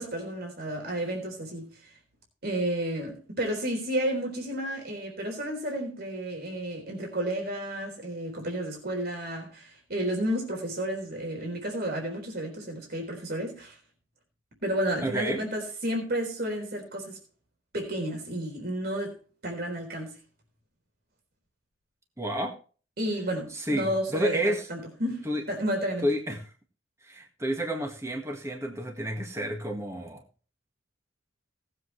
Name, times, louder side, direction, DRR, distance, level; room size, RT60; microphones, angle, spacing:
voice 1, 0.0-2.0 2.4-13.8 14.6-17.2 17.7-19.2 19.4-20.2 23.0-26.1, right 1 dB, 55° right, 3.9 m, -32 dB
voice 2, 15.0-15.4 22.2-22.6 23.5-24.7 25.2-25.4 26.0-26.4 27.0-30.2, equal, 15° right, 1.8 m, -30 dB
18.5 x 7.9 x 3.2 m
head